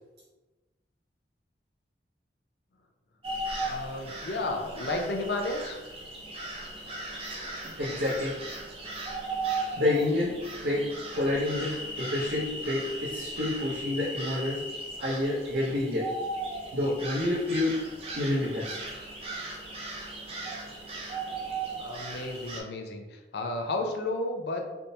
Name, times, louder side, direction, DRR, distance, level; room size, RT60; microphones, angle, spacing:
sound 1, 3.2-22.6, right 2 dB, 30° right, 0.5 m, -37 dB
voice 1, 3.6-5.8 21.8-24.7, left 2 dB, 65° left, 3 dB, 0.5 m, -32 dB
voice 2, 7.8-8.6 9.8-14.6 15.0-16.1 16.7-17.8 18.1-18.8, left 2 dB, 65° right, -7 dB, 0.7 m, -29 dB
3.4 x 2.7 x 2.7 m, 1.2 s
head